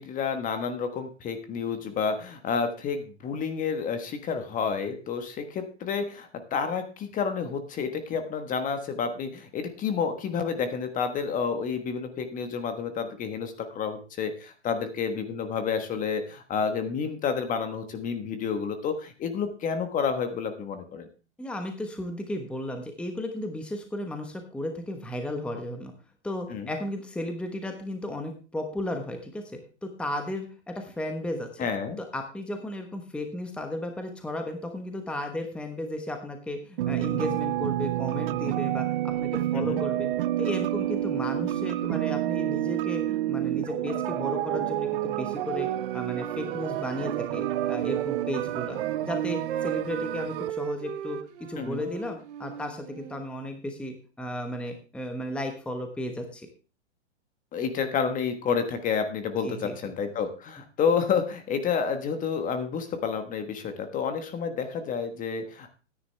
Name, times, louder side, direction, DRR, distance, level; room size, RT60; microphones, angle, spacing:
voice 1, 0.0-21.1 26.5-26.7 31.6-32.0 39.5-39.8 51.6-51.8 57.5-65.7, left 6 dB, 20° left, 8 dB, 1.3 m, -30 dB
voice 2, 21.4-25.9 26.2-31.7 32.0-40.1 40.4-51.2 51.5-56.5 59.4-59.9, left 1 dB, 5° left, 5 dB, 1.2 m, -34 dB
sound 1, 36.8-50.5, right 14 dB, 50° right, 0.6 m, -29 dB
Wind instrument woodwind instrument, 45.6-49.0 49.3-53.2, right 11 dB, 70° right, 1.3 m, -36 dB
13.5 x 9.9 x 3.4 m, 0.36 s
hypercardioid pair, 130°, 36 cm